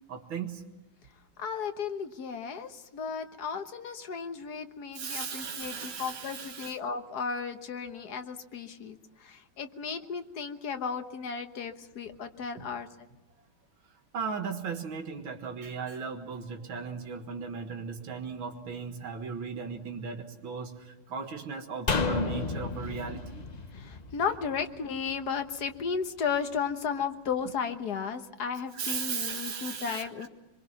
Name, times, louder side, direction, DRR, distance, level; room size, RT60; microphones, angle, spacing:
voice 1, 0.1-0.6 4.9-6.7 14.1-23.5 28.7-30.3, right 5 dB, 75° right, 4 dB, 2.5 m, -37 dB
voice 2, 1.4-12.9 23.7-30.3, left 6 dB, 55° left, 7 dB, 1.7 m, -34 dB
sound 1, 21.9-25.2 25.5-25.6, left 4 dB, 35° left, 0.6 m, -32 dB
24.5 x 22.5 x 5.9 m, 1.0 s
omnidirectional pair, 2.2 m